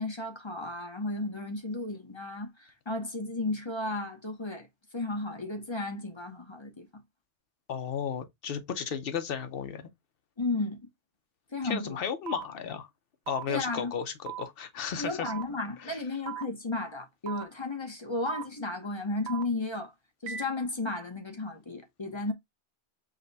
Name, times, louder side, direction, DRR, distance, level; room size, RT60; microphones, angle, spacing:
voice 1, 0.0-4.7 4.9-6.9 10.4-10.8 11.5-12.0 13.5-13.9 15.0-19.9 20.2-22.3, left 2 dB, 30° left, 0.8 m, -34 dB
voice 2, 7.7-9.9 11.6-12.9 13.3-15.3 15.8-16.0, left 7 dB, 60° left, 0.9 m, -34 dB
sound 1, 12.3-12.4 13.3-13.4 14.3-14.4 15.3-15.4 16.3-16.4 17.3-17.4 18.3-18.4 19.3-19.4 20.3-20.4, right 10 dB, 75° right, 0.9 m, -37 dB
5.2 x 2.2 x 3.9 m
omnidirectional pair, 1.1 m